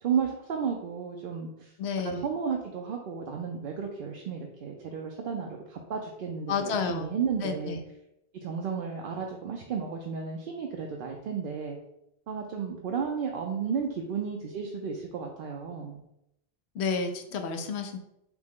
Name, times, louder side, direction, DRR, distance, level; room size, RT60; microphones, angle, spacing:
voice 1, 0.0-7.8 8.3-11.8 12.3-16.0, right 6 dB, 65° right, 1 dB, 0.7 m, -33 dB
voice 2, 1.8-2.2 6.5-7.1 7.4-7.8 16.7-18.0, left 5 dB, 85° left, 6 dB, 0.9 m, -30 dB
5.9 x 2.2 x 3.5 m, 0.83 s
omnidirectional pair, 1.1 m